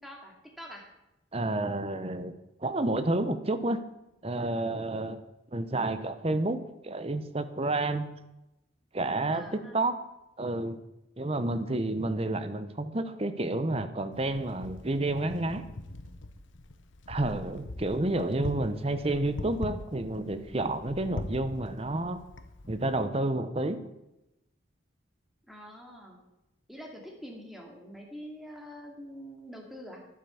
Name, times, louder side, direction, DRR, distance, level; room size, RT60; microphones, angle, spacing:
voice 1, 0.0-0.9 9.3-9.8 25.5-26.2 26.7-30.0, equal, ahead, 0 dB, 2.4 m, -45 dB
voice 2, 1.3-2.3 2.6-3.8 4.2-5.2 5.5-8.1 8.9-10.0 10.4-10.8 11.2-15.6 17.1-22.2 22.7-23.8, right 2 dB, 30° right, 11 dB, 0.8 m, -30 dB
Wind, 14.1-23.0, left 2 dB, 70° left, 1.0 m, -42 dB
11.5 x 9.2 x 7.0 m, 0.92 s
head